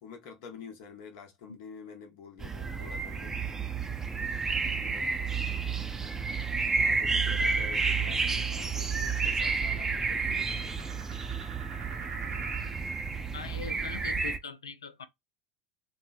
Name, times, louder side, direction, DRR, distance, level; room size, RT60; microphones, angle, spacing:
voice 1, 0.0-3.7 4.7-5.2 6.6-11.4, left 5 dB, 60° left, 1.0 m, -49 dB
sound 1, 2.4-14.4, right 4 dB, 20° right, 0.5 m, -30 dB
sound 2, 6.1-12.8, right 7 dB, 60° right, 0.7 m, -48 dB
voice 2, 13.3-15.1, left 7 dB, 85° left, 0.4 m, -41 dB
3.1 x 2.0 x 2.5 m
hypercardioid pair, 80°, 3 cm